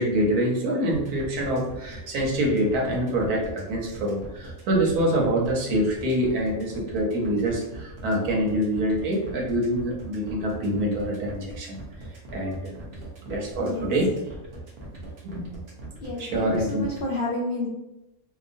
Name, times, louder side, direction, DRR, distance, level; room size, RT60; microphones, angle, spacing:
voice 1, 0.0-11.8 12.3-12.8 13.3-14.1 15.2-15.4 16.1-16.8, right 1 dB, 85° right, -1 dB, 1.2 m, -25 dB
sound 1, 0.9-17.0, right 1 dB, 55° right, 0.8 m, -40 dB
voice 2, 13.6-13.9 16.0-17.7, left 1 dB, 85° left, -3 dB, 0.4 m, -30 dB
2.9 x 2.3 x 2.5 m, 0.92 s
omnidirectional pair, 1.5 m